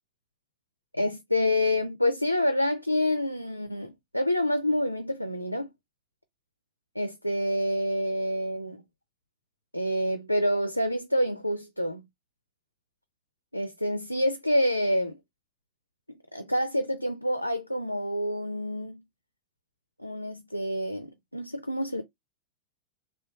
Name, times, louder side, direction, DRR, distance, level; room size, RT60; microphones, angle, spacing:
voice 1, 0.9-5.7 7.0-8.8 9.7-12.0 13.5-15.2 16.3-19.0 20.0-22.0, left 1 dB, 90° left, 0.4 m, -27 dB
3.2 x 2.7 x 3.3 m
figure-of-eight pair, 90°, 0 cm